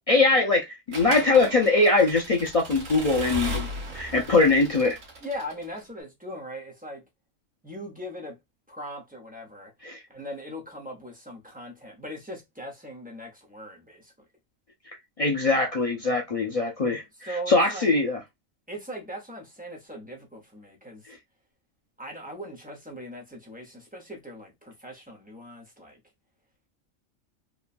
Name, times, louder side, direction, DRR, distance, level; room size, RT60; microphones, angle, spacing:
voice 1, 0.1-3.7 3.9-5.0 9.8-10.0 15.2-18.2, left 3 dB, 65° left, 0.3 m, -22 dB
Accelerating revving vroom / Mechanisms, 0.9-5.8, right 1 dB, 75° right, 1.3 m, -36 dB
voice 2, 5.2-7.0 7.6-8.4 8.7-9.7 10.1-14.1 17.1-18.0 18.7-21.1 22.0-26.0, equal, 10° right, 0.8 m, -39 dB
3.0 x 2.2 x 2.4 m
omnidirectional pair, 1.3 m